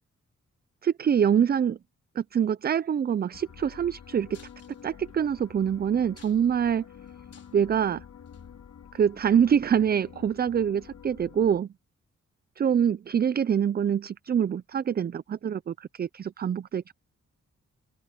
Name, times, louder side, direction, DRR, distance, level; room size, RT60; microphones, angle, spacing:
voice 1, 0.8-1.8 2.2-4.4 4.8-6.8 7.5-8.0 8.9-11.7 12.6-16.9, right 8 dB, 35° right, 0.4 m, -25 dB
sound 1, 3.3-11.6, left 8 dB, 75° left, 3.2 m, -48 dB
sound 2, 4.3-5.1 5.6-5.7 6.0-6.7 7.1-7.7 8.3-8.4 9.4-9.5, left 6 dB, 55° left, 4.3 m, -56 dB
open air
wide cardioid pair, 125°, 29 cm